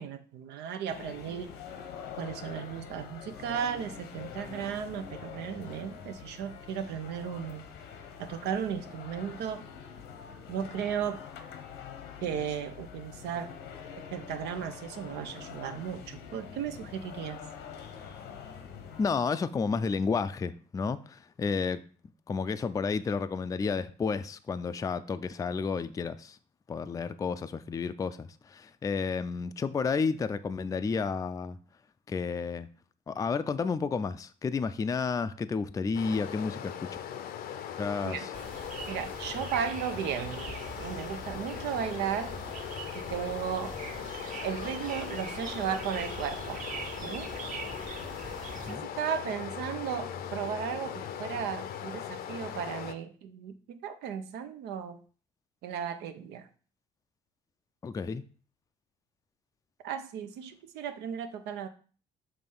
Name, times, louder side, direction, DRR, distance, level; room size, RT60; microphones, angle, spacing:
voice 1, 0.0-1.5 2.2-7.6 8.2-9.6 10.5-11.2 12.2-13.6 14.1-17.4 38.0-38.2 38.9-40.5 40.8-42.4 42.9-43.8 44.4-46.6 47.0-47.3 48.7-55.0 55.6-56.5 59.8-61.7, right 8 dB, 85° right, 0.8 m, -35 dB
sound 1, 0.9-19.1, left 7 dB, 85° left, 1.0 m, -45 dB
voice 2, 19.0-21.8 22.3-26.4 26.7-31.6 32.1-32.7 33.1-37.0 37.8-38.3 48.7-48.9 57.8-58.2, left 5 dB, 20° left, 0.4 m, -31 dB
Stream, 35.9-52.9, left 9 dB, 60° left, 0.6 m, -39 dB
sound 2, 38.3-48.8, right 4 dB, 50° right, 1.1 m, -43 dB
6.9 x 3.3 x 5.4 m
cardioid pair, 110°, 17 cm